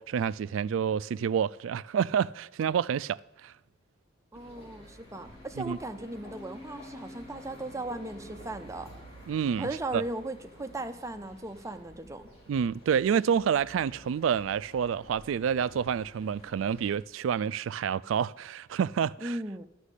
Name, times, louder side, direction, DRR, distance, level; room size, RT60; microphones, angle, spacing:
voice 1, 0.0-3.5 5.6-5.8 9.3-10.0 12.5-19.4, right 7 dB, 70° right, 0.3 m, -28 dB
sound 1, 4.3-16.9, equal, 30° left, 3.4 m, -50 dB
voice 2, 4.3-8.9 9.6-12.2 19.2-19.7, right 2 dB, 15° right, 0.6 m, -37 dB
11.5 x 6.1 x 8.2 m
head